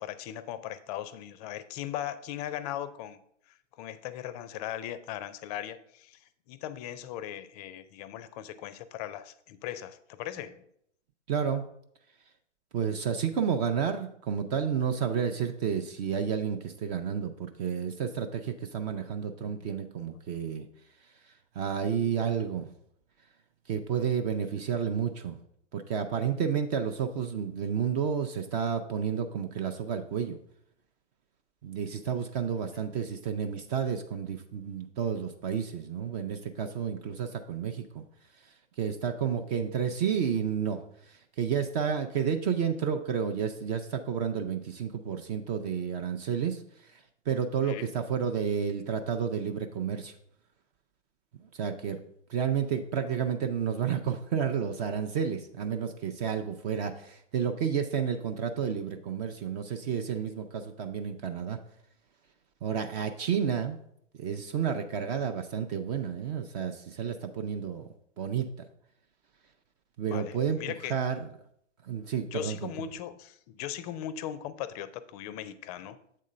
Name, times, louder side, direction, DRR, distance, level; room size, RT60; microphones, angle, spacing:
voice 1, 0.0-3.2 3.5-10.6 19.4-20.2 47.6-47.9 70.1-70.9 72.3-76.0, left 11 dB, 35° left, 15 dB, 0.4 m, -39 dB
voice 2, 11.3-11.7 12.7-20.7 21.6-22.7 23.7-25.4 25.7-30.4 31.6-38.0 38.8-50.1 51.5-52.0 52.3-61.6 62.6-63.8 64.2-67.9 68.2-68.5 70.0-70.6 70.9-71.3 71.8-72.7, right 7 dB, 35° right, 7 dB, 0.5 m, -31 dB
7.5 x 3.7 x 5.3 m, 0.70 s
hypercardioid pair, 110°, 37 cm